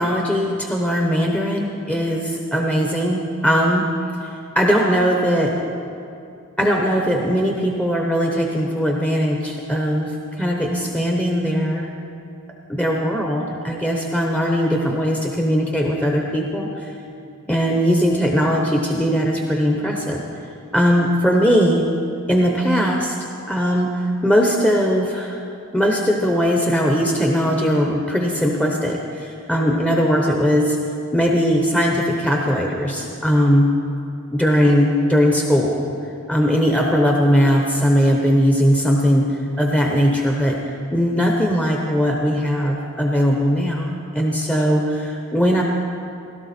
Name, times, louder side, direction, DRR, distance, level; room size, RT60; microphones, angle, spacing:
voice 1, 0.0-3.9 4.5-5.6 6.6-11.9 12.7-16.9 17.5-20.2 20.7-21.9 22.3-23.2 23.5-25.4 25.7-30.8 31.1-33.7 34.3-35.9 36.3-39.3 39.6-40.6 40.9-45.6, equal, 5° left, 0 dB, 0.8 m, -19 dB
16.5 x 12.5 x 4.3 m, 2.6 s
head